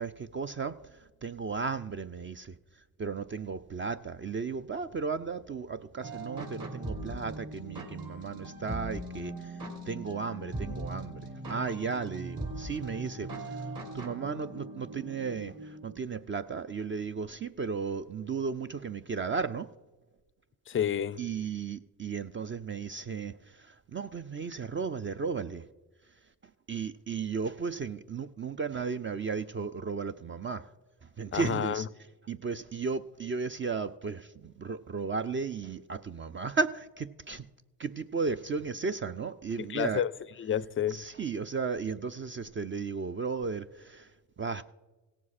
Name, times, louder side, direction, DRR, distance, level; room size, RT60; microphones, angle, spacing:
voice 1, 0.0-19.7 21.2-25.7 26.7-30.7 31.0-31.9 32.3-37.5 37.8-40.0 40.9-44.6, right 5 dB, 30° right, 0.4 m, -35 dB
sound 1, 6.0-15.9, right 2 dB, 45° right, 2.9 m, -40 dB
voice 2, 20.7-21.2 31.3-31.9 39.6-40.1 40.4-41.0, left 9 dB, 30° left, 0.4 m, -30 dB
17.0 x 7.3 x 4.2 m
supercardioid pair, 65°, 44 cm